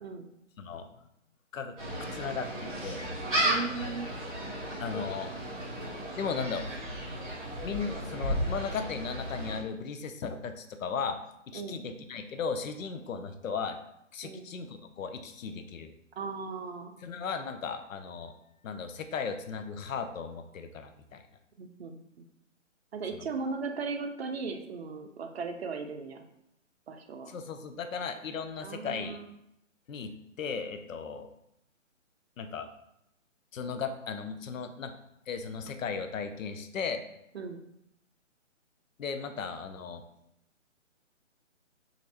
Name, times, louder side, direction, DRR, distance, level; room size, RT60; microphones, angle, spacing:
voice 1, 0.6-0.9 1.5-1.8 2.1-3.0 4.8-5.3 6.2-6.7 7.6-11.2 11.5-13.8 14.1-15.9 17.0-18.3 18.6-21.2 23.2-23.3 27.3-29.2 29.9-31.3 32.4-32.7 33.5-34.9 35.3-37.0 39.0-40.0, left 5 dB, 90° left, 8 dB, 0.5 m, -36 dB
Gull seagull, 1.8-9.6, right 1 dB, 20° right, 1.5 m, -34 dB
voice 2, 3.4-4.1 11.5-11.8 14.2-14.4 16.2-16.9 21.6-22.0 22.9-26.2 26.9-27.3 28.6-29.3 37.3-37.6, right 4 dB, 55° right, 5 dB, 0.5 m, -37 dB
3.1 x 2.5 x 2.8 m, 0.79 s
hypercardioid pair, 160°, 39 cm